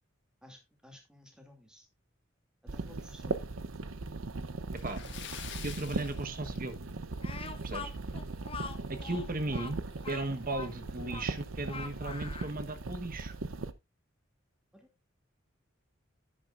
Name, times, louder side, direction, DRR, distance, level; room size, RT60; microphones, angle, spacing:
voice 1, 0.4-1.9 2.7-3.5 14.7-14.9, left 1 dB, 5° right, 2.5 m, -55 dB
sound 1, 2.7-13.7, right 3 dB, 90° right, 0.8 m, -39 dB
Splash splatter, 4.7-7.1 7.4-7.6 8.0-8.1 9.6-9.7 10.0-10.1 10.7-11.0, left 8 dB, 60° left, 1.6 m, -46 dB
voice 2, 5.6-6.8 7.6-7.9 8.9-13.3, right 2 dB, 45° right, 1.2 m, -36 dB
Speech, 7.2-12.6, left 5 dB, 30° left, 0.8 m, -44 dB
10.5 x 9.9 x 2.5 m
head